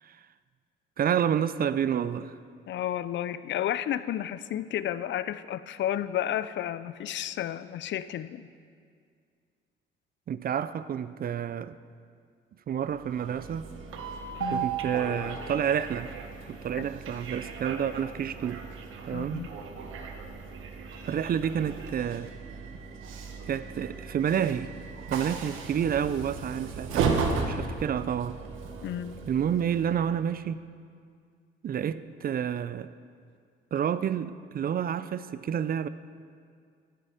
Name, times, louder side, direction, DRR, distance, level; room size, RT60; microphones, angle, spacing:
voice 1, 1.0-2.3 10.3-11.7 12.7-13.7 14.5-16.1 16.5-18.7 19.1-19.4 21.0-22.3 23.5-24.7 25.1-28.4 29.3-30.6 31.6-32.9 33.7-35.9, right 8 dB, 50° right, 0.5 m, -29 dB
voice 2, 2.7-8.5 14.4-14.7 16.7-16.8 19.1-19.5 28.8-29.2, left 11 dB, 65° left, 0.5 m, -32 dB
Train, 12.9-30.2, right 5 dB, 85° right, 1.2 m, -35 dB
12.5 x 12.0 x 5.1 m
cardioid pair, 90°, 20 cm